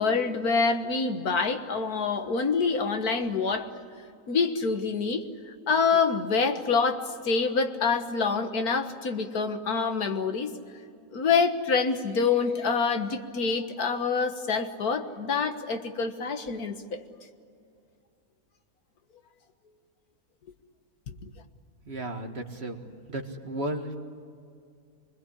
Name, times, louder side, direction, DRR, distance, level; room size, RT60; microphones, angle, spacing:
voice 1, 0.0-3.7 4.3-10.5 11.1-17.0 21.1-21.2, left 5 dB, 85° left, 7 dB, 2.0 m, -26 dB
voice 2, 21.9-24.0, right 1 dB, 45° right, 4 dB, 2.1 m, -34 dB
25.5 x 21.0 x 9.9 m, 2.4 s
omnidirectional pair, 1.6 m